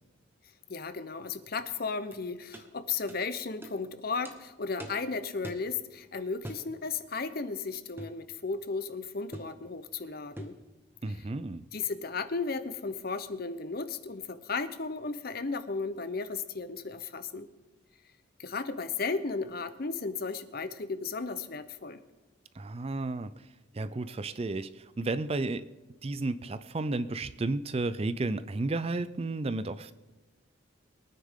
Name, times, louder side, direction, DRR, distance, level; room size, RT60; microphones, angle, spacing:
voice 1, 0.7-10.6 11.7-17.5 18.4-22.0, left 4 dB, 45° left, 12 dB, 0.7 m, -35 dB
sound 1, 2.1-2.2 2.5-2.7 3.1-3.2 3.6-3.8 4.2-4.4 4.8-5.0 5.4-5.7 6.4-6.7 8.0-8.2 9.3-9.6 10.4-10.6, equal, 10° right, 1.1 m, -43 dB
voice 2, 11.0-11.6 22.5-23.5 23.7-25.7 26.0-29.9, right 2 dB, 30° right, 14 dB, 0.4 m, -32 dB
22.5 x 9.6 x 3.7 m, 1.1 s
head